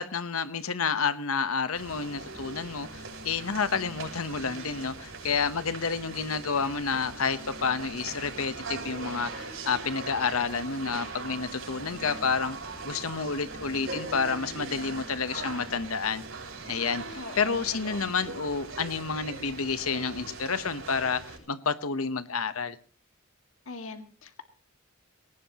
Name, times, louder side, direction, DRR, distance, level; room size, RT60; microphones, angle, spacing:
voice 1, 0.0-12.6 12.8-16.2 16.7-22.8, left 5 dB, 85° left, 1.0 m, -30 dB
sound 1, 1.7-21.4, right 3 dB, 70° right, 7.2 m, -40 dB
voice 2, 17.2-17.6 17.9-18.0 23.7-24.4, left 3 dB, 70° left, 1.9 m, -41 dB
21.5 x 18.5 x 3.0 m
head